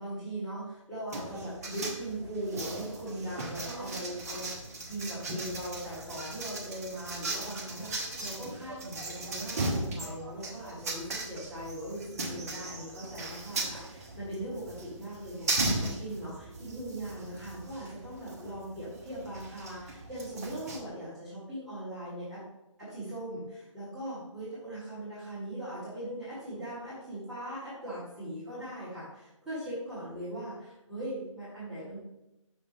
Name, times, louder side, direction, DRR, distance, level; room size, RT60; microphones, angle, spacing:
voice 1, 0.0-4.5 4.9-22.4 22.8-32.0, right 1 dB, ahead, -16 dB, 2.5 m, -40 dB
sound 1, 1.1-20.8, right 2 dB, 30° right, 1.0 m, -37 dB
6.1 x 6.1 x 3.4 m, 0.92 s
figure-of-eight pair, 155°, 17 cm